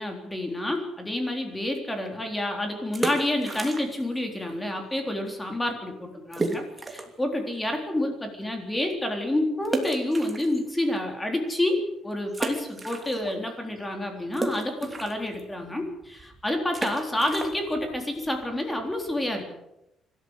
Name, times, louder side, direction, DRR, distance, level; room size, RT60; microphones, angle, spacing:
voice 1, 0.0-19.5, left 1 dB, 10° left, 3 dB, 3.8 m, -29 dB
sound 1, 2.8-4.2 4.4-4.5 5.1-5.2 5.5-5.6 6.3-7.2 7.7-7.8 9.6-11.0 11.5-11.6 12.3-13.5 13.8-19.3, right 2 dB, 15° right, 2.8 m, -34 dB
25.5 x 13.0 x 8.3 m, 0.87 s
cardioid pair, 140°, 0 cm